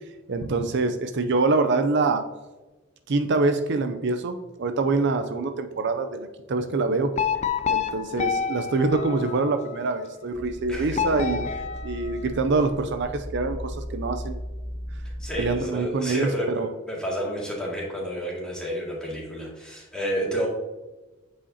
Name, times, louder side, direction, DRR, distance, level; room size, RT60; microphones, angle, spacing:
voice 1, 0.3-2.2 3.1-7.1 7.7-11.4 11.8-14.4 15.4-16.3 16.5-16.7, right 3 dB, 60° right, 7 dB, 0.5 m, -25 dB
sound 1, 7.1-9.8 10.9-12.7, left 7 dB, 35° left, 0.4 m, -29 dB
sound 2, 10.3-15.6, equal, 20° right, 0.9 m, -36 dB
voice 2, 15.2-20.5, equal, 5° left, -5 dB, 2.1 m, -30 dB
8.3 x 4.9 x 2.8 m, 1.1 s
head